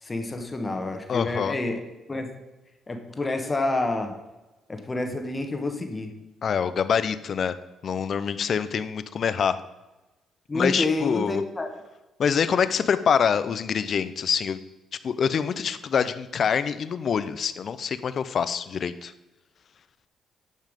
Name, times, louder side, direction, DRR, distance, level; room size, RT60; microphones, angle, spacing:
voice 1, 0.0-1.8 2.1-2.4 2.9-4.2 4.7-6.1 10.5-11.8, left 2 dB, 25° left, 6 dB, 1.3 m, -28 dB
voice 2, 1.1-1.5 6.4-7.5 7.8-9.6 10.5-11.4 12.2-14.6 15.0-19.1, left 7 dB, 55° left, 13 dB, 0.6 m, -25 dB
10.5 x 5.6 x 5.2 m, 1.1 s
cardioid pair, 90°, 0 cm